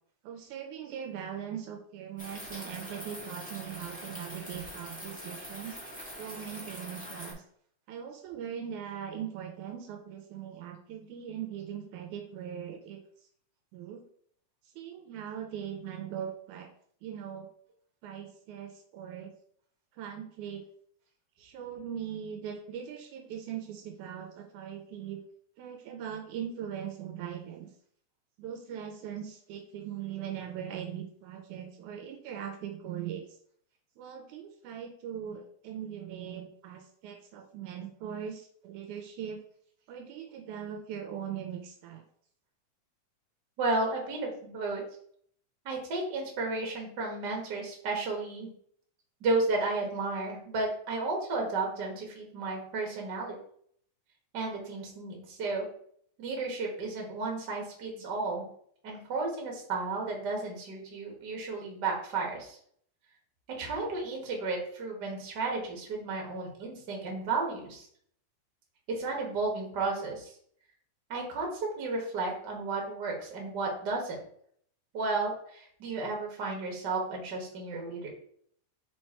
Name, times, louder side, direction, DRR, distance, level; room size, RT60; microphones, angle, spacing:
voice 1, 0.2-5.8 6.1-7.4 7.9-13.0 13.7-14.1 14.8-16.7 17.0-17.5 18.0-19.3 19.9-20.6 21.4-25.2 25.6-27.7 28.4-33.4 34.0-39.4 39.9-42.0, right 9 dB, 80° right, 5 dB, 2.0 m, -40 dB
sound 1, 2.2-7.3, equal, 5° left, 1.0 m, -43 dB
voice 2, 43.6-44.8 45.7-48.5 49.2-53.3 54.3-55.7 56.2-58.5 58.8-62.6 63.6-67.9 68.9-70.3 71.1-74.2 74.9-78.1, right 3 dB, 40° right, 0 dB, 1.7 m, -33 dB
5.1 x 4.5 x 4.3 m, 0.63 s
omnidirectional pair, 3.6 m